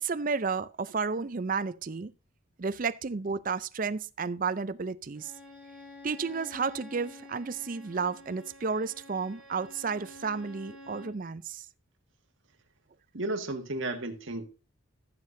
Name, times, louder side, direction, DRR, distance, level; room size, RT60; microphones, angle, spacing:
voice 1, 0.0-2.1 2.6-5.3 6.0-11.7, right 5 dB, 40° right, 0.5 m, -32 dB
Bowed string instrument, 5.1-11.2, left 1 dB, 5° right, 2.5 m, -49 dB
voice 2, 13.1-14.4, right 2 dB, 65° right, 1.8 m, -33 dB
14.5 x 7.5 x 2.7 m
head